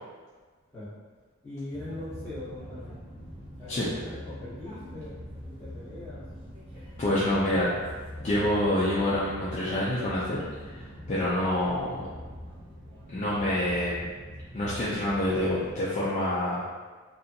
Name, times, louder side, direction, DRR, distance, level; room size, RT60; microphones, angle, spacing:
voice 1, 1.4-3.0 3.6-6.2 7.1-7.8, left 1 dB, 5° left, -13 dB, 1.1 m, -41 dB
sound 1, 1.7-15.8, equal, 25° right, 0.8 m, -43 dB
voice 2, 7.0-7.7 8.2-12.0 13.1-14.1 14.5-16.7, left 1 dB, 30° left, -9 dB, 0.3 m, -27 dB
2.6 x 2.3 x 2.6 m, 1.4 s
head